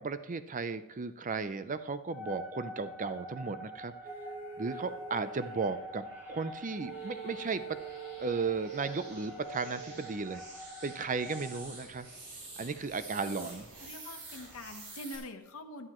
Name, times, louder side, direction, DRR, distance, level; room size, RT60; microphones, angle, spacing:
voice 1, 0.0-3.9 4.6-7.8 8.2-10.4 10.8-12.1 12.6-13.6, right 4 dB, 35° right, 12 dB, 0.6 m, -35 dB
sound 1, 2.1-11.6, equal, 10° right, 2.0 m, -46 dB
sound 2, 3.6-15.2, right 2 dB, 80° right, 5.7 m, -51 dB
sound 3, 4.0-5.7 6.7-10.3, right 6 dB, 45° left, 1.7 m, -46 dB
voice 2, 13.8-15.9, left 1 dB, 65° left, 6 dB, 1.2 m, -44 dB
17.0 x 11.0 x 3.1 m, 0.93 s
head